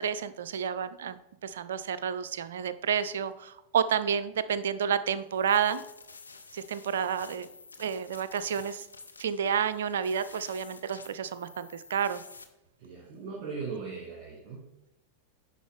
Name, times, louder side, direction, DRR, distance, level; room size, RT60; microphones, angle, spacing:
voice 1, 0.0-5.8 6.5-7.5 7.8-8.8 9.2-12.2, right 7 dB, 60° right, 13 dB, 0.4 m, -30 dB
sound 1, 5.3-12.4, left 4 dB, 75° left, 0.6 m, -51 dB
voice 2, 12.8-14.9, right 5 dB, 40° right, -3 dB, 1.9 m, -39 dB
9.9 x 4.4 x 3.4 m, 0.87 s
figure-of-eight pair, 90°, 0 cm